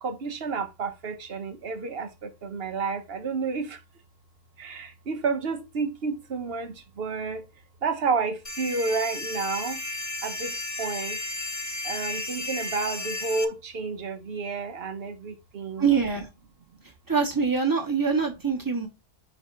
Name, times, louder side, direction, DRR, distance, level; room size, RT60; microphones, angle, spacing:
voice 1, 0.0-3.8 4.6-7.4 7.8-9.8 10.2-10.5 10.8-11.2 11.8-15.9, right 4 dB, 60° right, 1.3 m, -30 dB
sound 1, 8.4-13.4, left 2 dB, 20° left, 0.6 m, -33 dB
voice 2, 15.8-16.3 17.1-18.9, right 5 dB, 15° right, 1.6 m, -24 dB
4.7 x 4.2 x 5.6 m
omnidirectional pair, 1.2 m